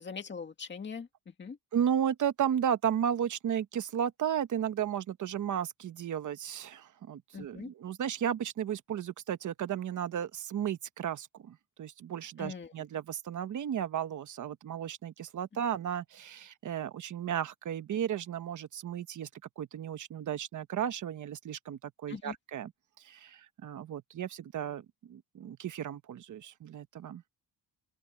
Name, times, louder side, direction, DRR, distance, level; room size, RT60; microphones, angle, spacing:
voice 1, 0.0-1.6 7.3-7.7 12.4-12.7 22.1-22.4, left 5 dB, 25° left, 2.2 m, -42 dB
voice 2, 1.7-19.3 19.6-22.7 23.0-27.2, right 9 dB, 45° right, 1.1 m, -34 dB
open air
cardioid pair, 170°, 41 cm